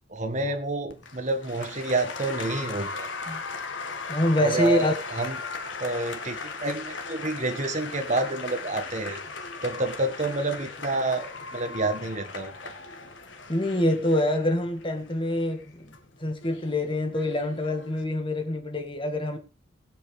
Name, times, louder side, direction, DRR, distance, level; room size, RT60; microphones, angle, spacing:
voice 1, 0.1-3.1 4.4-5.4 5.8-9.2 9.6-12.7, right 2 dB, 40° right, 1.8 m, -29 dB
Applause, 0.9-18.0, left 4 dB, 70° left, 1.9 m, -38 dB
voice 2, 4.1-4.9 13.5-15.9 16.2-19.4, left 1 dB, 25° left, 1.9 m, -25 dB
19.0 x 8.3 x 3.5 m
head